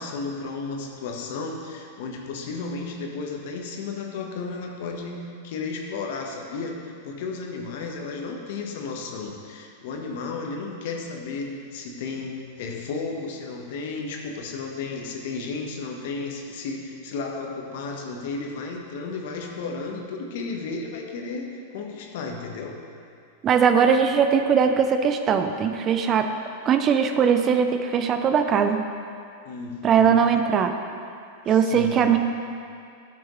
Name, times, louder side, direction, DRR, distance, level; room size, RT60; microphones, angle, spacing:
voice 1, 0.0-22.8 29.4-30.4 31.5-32.1, left 4 dB, 65° left, 1 dB, 1.2 m, -33 dB
voice 2, 23.4-26.3 26.7-28.8 29.8-30.7 31.5-32.2, right 7 dB, 35° right, 7 dB, 0.6 m, -20 dB
12.5 x 6.1 x 3.2 m, 2.4 s
hypercardioid pair, 115°, 0 cm